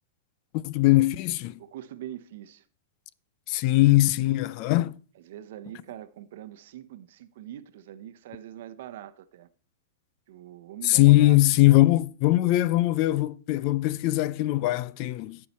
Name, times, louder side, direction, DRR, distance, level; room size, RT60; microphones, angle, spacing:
voice 1, 0.5-1.5 3.5-4.9 10.8-15.4, left 17 dB, 45° left, 0.4 m, -21 dB
voice 2, 1.6-2.6 5.2-9.5 10.3-11.4, right 12 dB, 65° right, 0.9 m, -43 dB
15.5 x 5.8 x 4.2 m
supercardioid pair, 150°, 0 cm